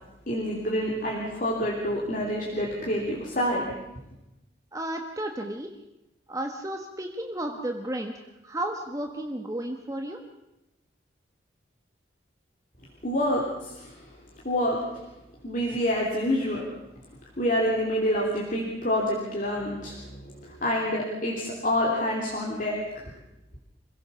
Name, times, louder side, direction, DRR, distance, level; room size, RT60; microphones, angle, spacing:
voice 1, 0.3-3.7 13.0-14.0 14.4-14.9 15.4-16.7 17.4-23.1, equal, 45° left, -3 dB, 3.3 m, -27 dB
voice 2, 4.7-5.7 6.3-10.3, right 1 dB, 20° right, 3 dB, 1.4 m, -33 dB
26.0 x 16.5 x 7.0 m, 0.93 s
head